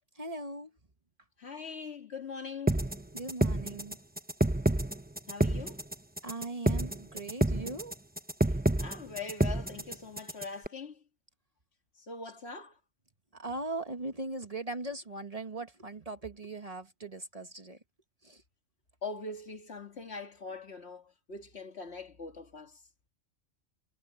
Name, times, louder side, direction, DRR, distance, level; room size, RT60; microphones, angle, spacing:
voice 1, 0.1-0.7 3.1-4.0 6.2-8.0 13.3-17.8 18.2-18.4, right 2 dB, 30° right, 1.3 m, -39 dB
voice 2, 1.4-2.9 5.3-5.8 8.8-11.0 12.0-12.8 19.0-22.8, left 4 dB, 60° left, 2.2 m, -42 dB
sound 1, 2.7-10.7, right 1 dB, 10° right, 0.9 m, -28 dB
omnidirectional pair, 1.2 m